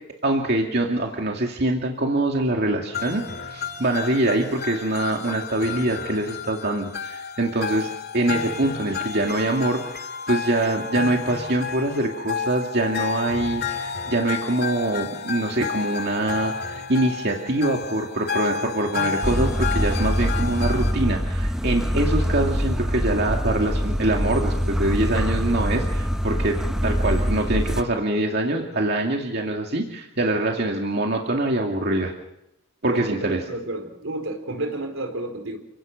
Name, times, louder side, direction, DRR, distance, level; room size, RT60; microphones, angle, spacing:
voice 1, 0.2-26.6 26.8-32.1 32.8-33.4, right 1 dB, 55° right, 1 dB, 2.4 m, -24 dB
sound 1, 2.9-20.9, left 6 dB, 50° left, 2.1 m, -31 dB
sound 2, 19.2-27.8, equal, 5° right, 0.9 m, -24 dB
voice 2, 32.9-35.6, right 2 dB, 80° right, 6 dB, 4.5 m, -30 dB
29.0 x 18.0 x 6.7 m, 0.84 s
head